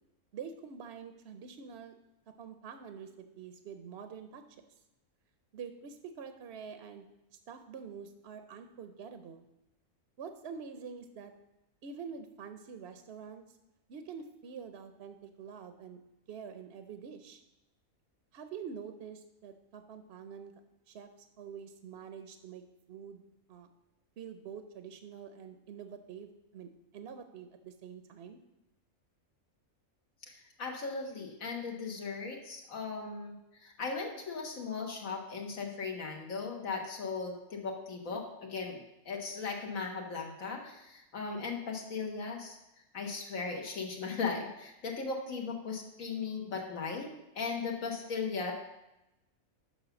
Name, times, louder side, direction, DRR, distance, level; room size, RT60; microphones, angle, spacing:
voice 1, 0.3-1.9 2.4-4.7 5.5-7.1 7.5-9.4 10.2-11.3 11.8-13.6 13.9-16.0 16.3-17.4 18.3-20.5 20.9-21.1 21.4-22.6 22.9-23.2 23.5-23.7 24.2-28.4, right 6 dB, 60° right, 8 dB, 0.8 m, -46 dB
voice 2, 30.2-42.6 42.9-47.1 47.3-48.5, left 4 dB, 75° left, 1 dB, 1.6 m, -37 dB
7.4 x 5.8 x 6.9 m, 0.91 s
omnidirectional pair, 1.5 m